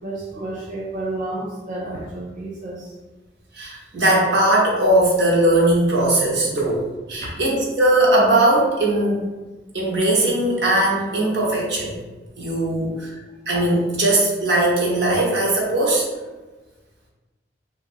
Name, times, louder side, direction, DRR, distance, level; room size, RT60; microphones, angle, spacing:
voice 1, 0.0-2.9 7.2-7.3, right 2 dB, 45° right, -4 dB, 0.3 m, -31 dB
voice 2, 3.5-6.8 7.1-9.3 9.7-11.9 12.4-13.1 13.5-16.0, right 1 dB, 70° right, -4 dB, 0.8 m, -19 dB
3.1 x 2.4 x 2.5 m, 1.2 s
head